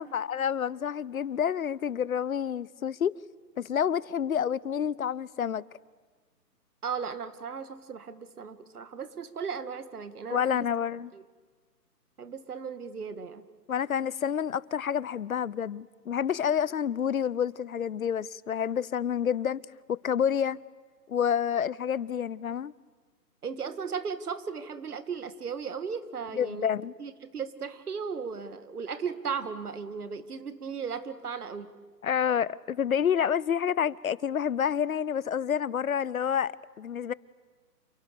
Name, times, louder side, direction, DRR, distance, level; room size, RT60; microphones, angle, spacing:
voice 1, 0.0-3.2 3.6-5.6 10.3-11.1 13.7-19.6 19.9-20.6 21.1-22.7 26.3-26.9 32.0-37.1, left 8 dB, 60° left, 0.7 m, -28 dB
voice 2, 6.8-10.7 11.1-11.2 12.2-13.5 23.4-26.7 27.0-31.7, right 6 dB, 65° right, 2.1 m, -36 dB
29.0 x 28.5 x 6.9 m
figure-of-eight pair, 145°, 48 cm